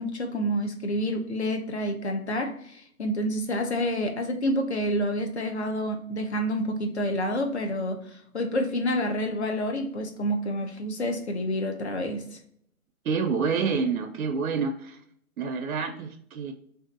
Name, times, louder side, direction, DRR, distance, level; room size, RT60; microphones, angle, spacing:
voice 1, 0.0-12.4, equal, 50° left, 0.5 m, -28 dB
voice 2, 13.0-15.0 15.4-16.5, right 5 dB, 75° right, 0.5 m, -28 dB
3.3 x 2.7 x 2.4 m
hypercardioid pair, 180°, 43 cm